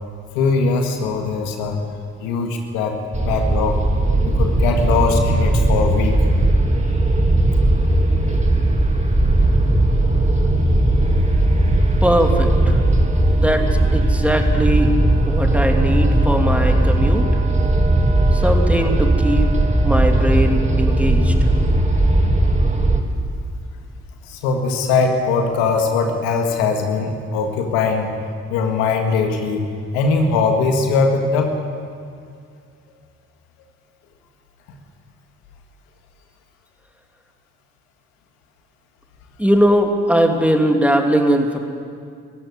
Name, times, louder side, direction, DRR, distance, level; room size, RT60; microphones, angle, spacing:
voice 1, 0.4-1.8 2.2-3.8 4.2-6.3 24.2-28.1 28.5-29.6 29.9-31.5, left 4 dB, 85° left, 3 dB, 1.9 m, -20 dB
sound 1, 3.1-23.0, right 1 dB, 20° right, 2.6 m, -17 dB
voice 2, 12.0-12.8 13.3-13.6 13.9-15.0 15.3-17.3 18.3-19.5 19.8-21.3 39.4-41.7, equal, 5° right, 3 dB, 2.8 m, -19 dB
18.5 x 15.0 x 9.8 m, 2.3 s
hypercardioid pair, 45°, 34 cm